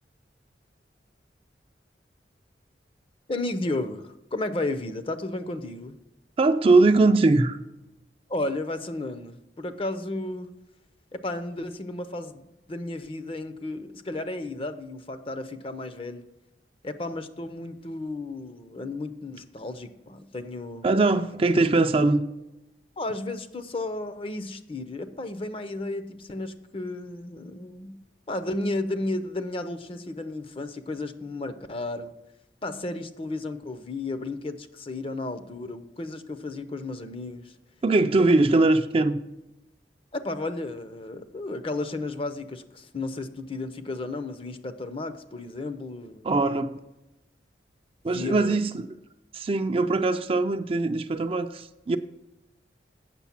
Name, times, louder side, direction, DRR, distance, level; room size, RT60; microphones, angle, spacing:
voice 1, 3.3-6.0 8.3-10.5 11.1-16.2 16.8-20.8 23.0-28.0 28.3-32.1 32.6-37.5 40.1-46.6 48.1-48.6, left 2 dB, 30° left, 0.5 m, -33 dB
voice 2, 6.4-7.6 20.8-22.2 37.8-39.2 46.2-46.7 48.0-48.9 49.3-52.0, right 3 dB, 30° right, 0.4 m, -21 dB
8.3 x 6.5 x 5.8 m
head